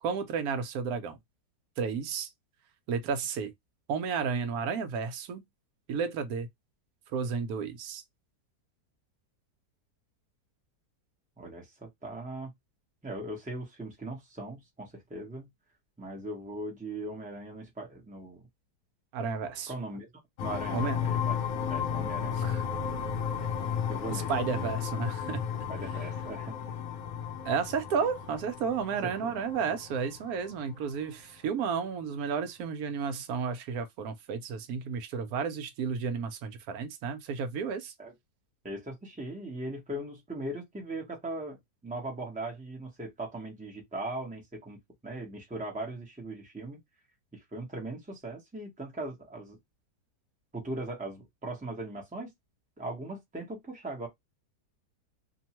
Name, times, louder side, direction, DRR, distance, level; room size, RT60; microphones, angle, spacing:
voice 1, 0.0-1.2 1.8-2.3 2.9-3.5 3.9-5.4 5.9-6.5 7.1-8.0 19.1-19.7 20.7-21.0 22.4-22.7 24.1-25.5 27.4-37.9, right 6 dB, 70° right, 1.1 m, -32 dB
voice 2, 11.4-12.5 13.0-15.5 16.0-18.4 19.7-20.1 20.4-21.4 21.7-22.6 23.9-24.7 25.7-26.5 28.9-29.4 38.0-38.1 38.6-46.8 47.3-49.6 50.5-52.3 52.8-54.1, right 2 dB, 10° right, 0.6 m, -39 dB
sound 1, 20.4-30.9, left 8 dB, 70° left, 0.9 m, -34 dB
2.9 x 2.1 x 2.9 m
omnidirectional pair, 1.8 m